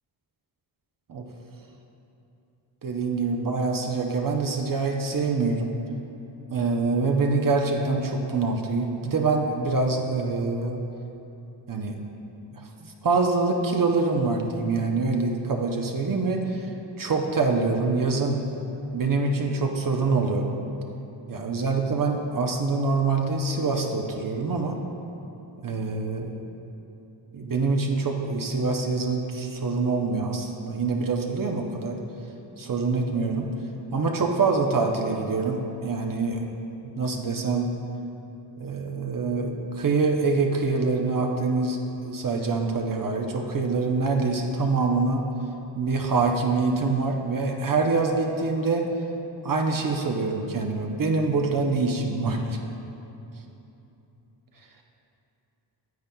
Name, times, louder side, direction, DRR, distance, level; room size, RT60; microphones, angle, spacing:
voice 1, 2.8-5.7 6.5-10.8 11.7-11.9 12.8-16.7 17.0-18.4 18.9-20.5 21.3-24.7 25.6-26.4 27.3-32.0 32.6-33.5 33.9-36.4 36.8-37.7 38.6-41.8 42.0-45.3 45.8-48.8 49.4-52.6, right 3 dB, 45° right, 2 dB, 0.7 m, -25 dB
9.3 x 8.6 x 2.2 m, 3.0 s
wide cardioid pair, 90°, 45 cm